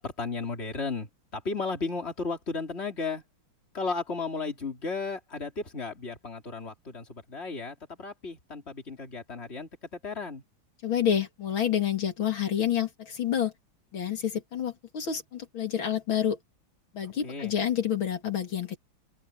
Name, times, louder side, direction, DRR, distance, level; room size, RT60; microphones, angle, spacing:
voice 1, 0.0-3.2 3.7-10.4 17.2-17.5, left 4 dB, 30° left, 3.6 m, -34 dB
voice 2, 10.8-13.5 13.9-16.4 16.9-18.8, left 9 dB, 80° left, 3.0 m, -28 dB
open air
omnidirectional pair, 2.2 m